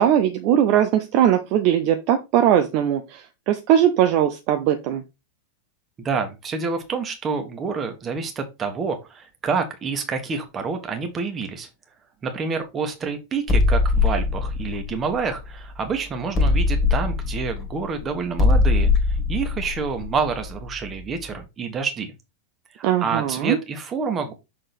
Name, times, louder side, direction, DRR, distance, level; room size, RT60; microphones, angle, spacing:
voice 1, 0.0-5.0 22.8-23.6, right 10 dB, 45° right, 7 dB, 0.6 m, -20 dB
voice 2, 6.0-11.7 12.2-22.1 22.8-24.3, right 5 dB, 25° right, 6 dB, 1.5 m, -28 dB
sound 1, 13.5-15.8 16.3-21.0, left 3 dB, 25° left, 1.8 m, -21 dB
6.5 x 3.8 x 4.3 m, 0.25 s
figure-of-eight pair, 90°, 0 cm